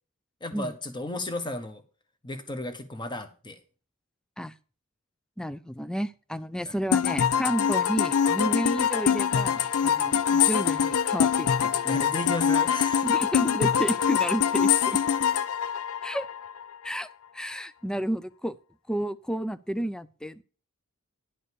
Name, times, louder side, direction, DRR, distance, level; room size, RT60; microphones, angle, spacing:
voice 1, 0.4-1.8 2.2-3.6 6.6-6.8 11.8-13.1, left 1 dB, 20° left, 7 dB, 1.3 m, -34 dB
voice 2, 5.4-11.7 13.0-15.0 16.0-16.3 16.8-17.1 17.3-18.6 18.9-20.4, right 1 dB, 5° left, 15 dB, 0.4 m, -31 dB
sound 1, 6.9-16.6, left 8 dB, 80° left, 0.5 m, -24 dB
11.0 x 5.2 x 6.4 m, 0.37 s
head